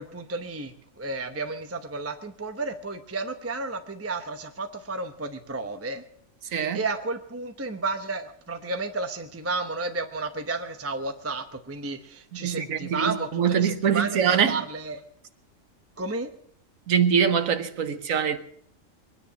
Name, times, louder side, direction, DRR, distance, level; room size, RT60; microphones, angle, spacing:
voice 1, 0.0-6.0 6.4-15.0 16.0-16.3, right 3 dB, 15° right, 0.8 m, -32 dB
voice 2, 6.5-6.8 12.3-14.6 16.9-18.4, right 7 dB, 80° right, 1.5 m, -24 dB
22.5 x 10.0 x 6.2 m
omnidirectional pair, 1.4 m